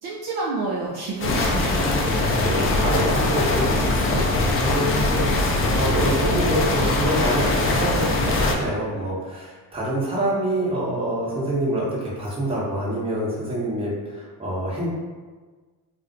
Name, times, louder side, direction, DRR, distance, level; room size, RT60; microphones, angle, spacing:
voice 1, 0.0-2.0 5.3-5.6, right 3 dB, 50° right, -4 dB, 0.5 m, -30 dB
sound 1, 1.2-8.5, left 2 dB, 30° left, 0.4 m, -21 dB
voice 2, 1.9-14.9, right 1 dB, 10° right, -6 dB, 0.9 m, -26 dB
2.4 x 2.1 x 2.5 m, 1.4 s
supercardioid pair, 65°, 48 cm